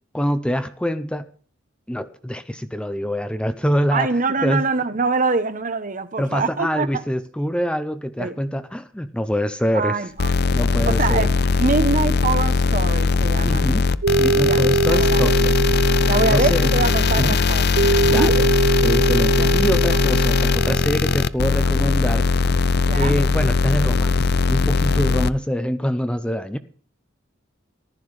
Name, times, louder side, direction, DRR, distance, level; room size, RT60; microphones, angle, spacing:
voice 1, 0.1-1.3 1.9-4.6 6.2-11.3 13.4-13.9 14.2-15.5 16.3-16.7 17.2-17.4 18.0-18.5 18.8-22.7 23.0-24.2 24.5-26.6, equal, 5° left, 0.6 m, -25 dB
voice 2, 3.9-7.0 8.2-8.3 9.7-10.3 10.9-13.7 14.4-15.3 16.1-17.7 18.1-18.3 19.4-20.0 22.8-23.2, right 3 dB, 40° right, 1.0 m, -24 dB
sound 1, 10.2-25.3, left 4 dB, 55° left, 0.5 m, -19 dB
sound 2, 14.0-21.3, right 3 dB, 90° right, 0.5 m, -22 dB
14.5 x 11.5 x 4.9 m
head